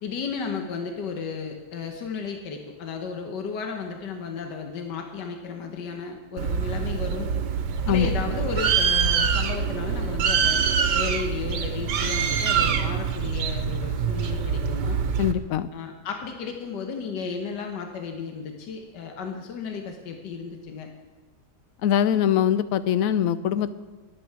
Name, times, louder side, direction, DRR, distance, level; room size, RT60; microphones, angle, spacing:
voice 1, 0.0-7.3 7.9-10.6 10.9-15.0 15.7-20.9, left 5 dB, 85° left, 3 dB, 1.7 m, -34 dB
Bird, 6.4-15.3, right 6 dB, 75° right, 1.5 m, -25 dB
voice 2, 15.2-15.7 21.8-23.8, left 9 dB, 65° left, 14 dB, 0.9 m, -22 dB
22.0 x 8.5 x 4.7 m, 1.3 s
omnidirectional pair, 1.8 m